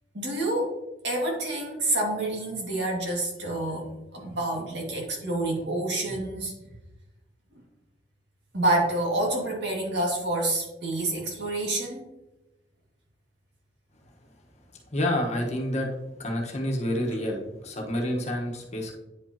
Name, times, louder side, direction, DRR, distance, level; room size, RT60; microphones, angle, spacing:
voice 1, 0.1-0.7 1.0-6.5 8.5-12.1, right 2 dB, 70° right, -1 dB, 2.1 m, -28 dB
voice 2, 14.9-15.9 16.2-18.9, left 1 dB, 40° left, 0 dB, 1.3 m, -28 dB
9.6 x 5.3 x 2.9 m, 0.98 s
head